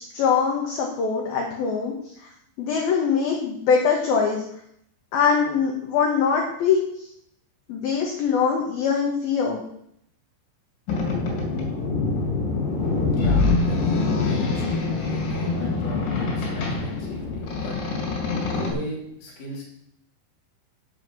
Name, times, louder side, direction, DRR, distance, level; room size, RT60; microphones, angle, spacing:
voice 1, 0.0-2.3 2.6-4.4 5.1-7.1 7.7-9.6, left 6 dB, 65° left, -1 dB, 2.9 m, -23 dB
Boat Water vehicle, 10.9-18.7, left 3 dB, 85° left, 5.2 m, -25 dB
voice 2, 13.1-17.8 18.6-19.6, equal, 40° left, -1 dB, 3.4 m, -37 dB
8.0 x 7.6 x 7.4 m, 0.71 s
omnidirectional pair, 5.3 m